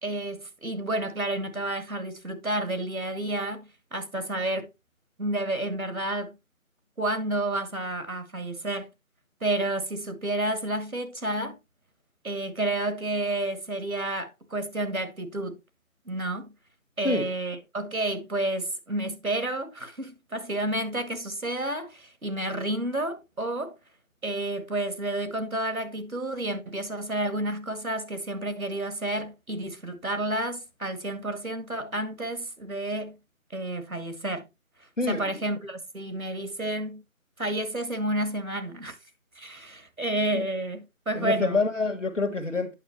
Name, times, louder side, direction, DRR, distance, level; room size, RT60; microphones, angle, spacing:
voice 1, 0.0-4.7 5.2-6.3 7.0-8.9 9.4-11.6 12.2-15.6 16.1-16.5 17.0-23.8 24.2-33.2 33.5-34.5 35.1-37.0 37.4-39.0 39.4-41.6, right 1 dB, 80° right, 2.1 m, -30 dB
voice 2, 35.0-35.3 40.3-40.4 41.1-42.7, left 3 dB, 60° left, 1.6 m, -27 dB
9.1 x 6.5 x 3.0 m
figure-of-eight pair, 170°, 41 cm